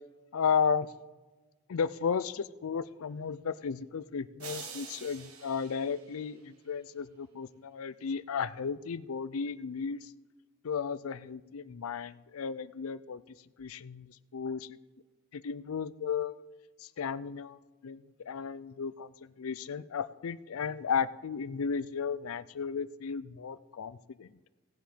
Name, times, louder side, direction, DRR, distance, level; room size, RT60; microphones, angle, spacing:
voice 1, 0.3-0.9 1.7-10.1 10.6-13.2 13.6-14.8 15.3-16.4 16.8-24.3, left 6 dB, 80° left, 16 dB, 0.5 m, -34 dB
sound 1, 4.4-6.7, right 6 dB, 85° right, 1.6 m, -47 dB
17.0 x 7.7 x 5.1 m, 1.3 s
head